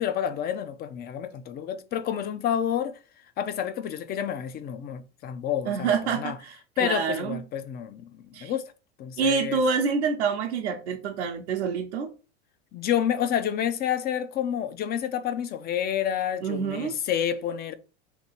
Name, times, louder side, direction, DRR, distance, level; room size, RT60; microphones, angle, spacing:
voice 1, 0.0-3.0 3.4-6.4 6.8-8.7 9.0-9.6 12.7-17.7, left 9 dB, 30° left, 0.4 m, -29 dB
voice 2, 5.7-7.4 8.3-8.5 9.2-12.1 16.4-16.9, right 6 dB, 90° right, 0.7 m, -27 dB
2.9 x 2.9 x 4.1 m
hypercardioid pair, 105°, 33 cm